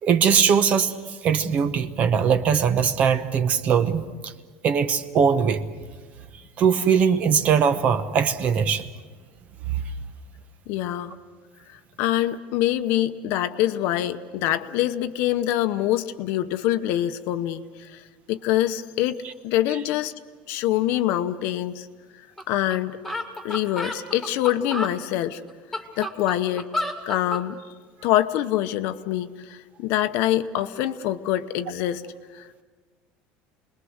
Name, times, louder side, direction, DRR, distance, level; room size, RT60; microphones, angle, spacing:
voice 1, 0.0-1.0 1.2-4.3 4.6-5.7 6.6-8.9, right 7 dB, 35° right, 11 dB, 1.0 m, -21 dB
voice 2, 10.7-11.2 11.7-18.0 18.3-19.2 19.4-20.1 20.5-21.9 22.5-23.0 23.4-25.4 25.7-26.7 27.1-27.6 28.0-32.0 32.3-32.6, left 13 dB, 55° left, 10 dB, 0.9 m, -25 dB
sound 1, 22.4-22.5 22.7-22.8 23.0-24.9 25.5-27.4, left 1 dB, ahead, 2.0 m, -30 dB
29.0 x 21.0 x 6.5 m, 1.5 s
cardioid pair, 175°, 4 cm